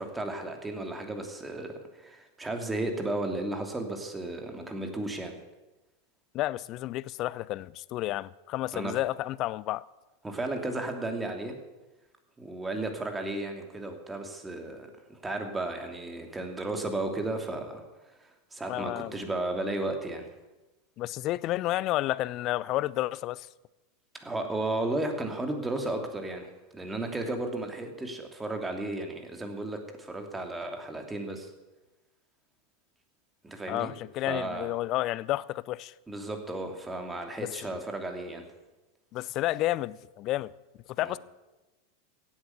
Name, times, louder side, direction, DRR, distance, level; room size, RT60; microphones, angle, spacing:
voice 1, 0.0-5.3 8.7-9.0 10.2-11.6 12.4-17.8 18.2-20.3 24.2-31.5 33.4-33.9 34.3-34.7 36.1-38.4 41.0-41.2, right 2 dB, 10° right, 2.8 m, -34 dB
voice 2, 6.3-9.9 18.7-19.2 21.0-23.5 33.7-35.9 37.4-37.8 39.1-40.5 41.0-41.2, left 16 dB, 45° left, 0.5 m, -31 dB
16.0 x 8.7 x 8.0 m
hypercardioid pair, 90°, 0 cm